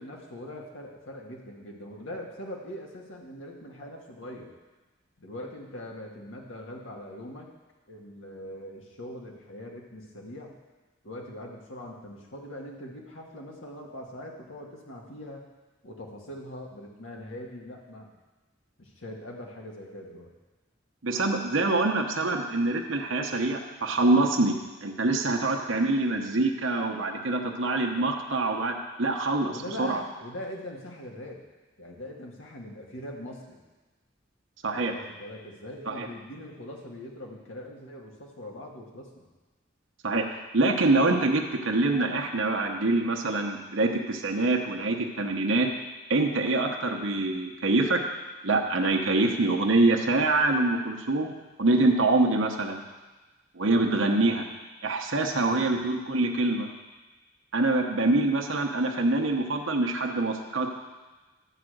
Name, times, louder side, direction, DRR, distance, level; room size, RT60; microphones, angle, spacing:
voice 1, 0.0-4.5 5.2-7.5 7.9-10.5 11.0-15.4 15.8-18.1 18.8-20.3 27.9-28.0 29.5-31.4 31.8-33.6 34.7-39.3 55.6-55.8, left 1 dB, 85° left, 0 dB, 1.7 m, -42 dB
voice 2, 21.0-30.0 34.6-34.9 35.9-36.1 40.0-45.7 46.1-48.0 48.4-52.8 53.5-54.5 54.8-56.7 57.5-60.7, right 2 dB, 75° right, 1 dB, 1.0 m, -25 dB
11.0 x 5.0 x 7.8 m, 1.2 s
head